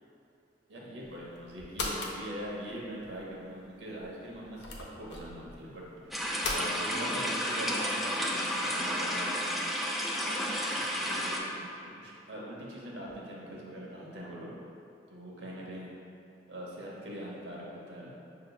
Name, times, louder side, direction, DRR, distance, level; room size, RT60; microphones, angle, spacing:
voice 1, 0.7-6.1 6.5-9.6 10.2-14.5 15.1-15.9 16.5-18.2, equal, 80° right, -4 dB, 0.8 m, -42 dB
sound 1, 1.0-6.6, left 3 dB, 75° left, 0.6 m, -40 dB
sound 2, 6.1-11.4, equal, ahead, 0.4 m, -32 dB
6.6 x 2.8 x 2.2 m, 2.7 s
head